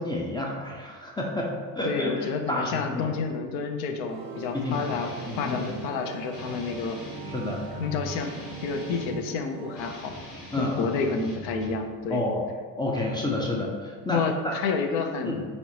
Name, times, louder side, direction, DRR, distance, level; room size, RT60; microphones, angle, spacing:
voice 1, 0.0-3.1 4.5-4.8 5.2-5.7 7.2-7.6 10.5-10.9 12.1-12.4 12.8-14.6 15.2-15.4, left 1 dB, 10° left, -3 dB, 0.3 m, -30 dB
voice 2, 1.8-7.0 7.8-8.3 8.6-10.1 10.6-12.2 14.1-15.4, left 5 dB, 70° left, 5 dB, 0.6 m, -29 dB
sound 1, 4.0-10.9, right 5 dB, 60° right, 0.5 m, -41 dB
Guitar, 4.6-5.9 6.3-9.3 9.7-11.9, left 1 dB, 40° left, 1.3 m, -42 dB
4.2 x 2.0 x 2.8 m, 1.5 s
hypercardioid pair, 65°, 49 cm